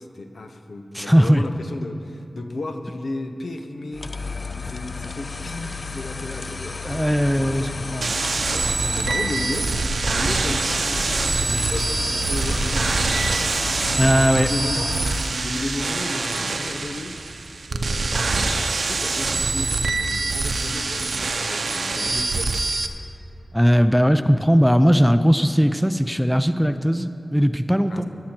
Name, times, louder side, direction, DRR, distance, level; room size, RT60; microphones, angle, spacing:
voice 1, 0.0-4.4 4.6-7.7 8.5-13.8 14.1-15.0 15.4-17.1 17.7-22.5 27.9-28.0, left 2 dB, 80° left, 6 dB, 0.9 m, -34 dB
voice 2, 0.9-1.4 6.8-8.1 14.0-14.5 23.5-28.0, equal, ahead, 10 dB, 0.6 m, -18 dB
sound 1, 3.9-15.5, left 4 dB, 50° left, 0.4 m, -32 dB
sound 2, 8.0-22.9, right 3 dB, 80° right, 0.7 m, -24 dB
sound 3, 10.9-17.4, equal, 25° left, 3.1 m, -37 dB
16.5 x 11.5 x 4.5 m, 2.6 s
cardioid pair, 45°, 0 cm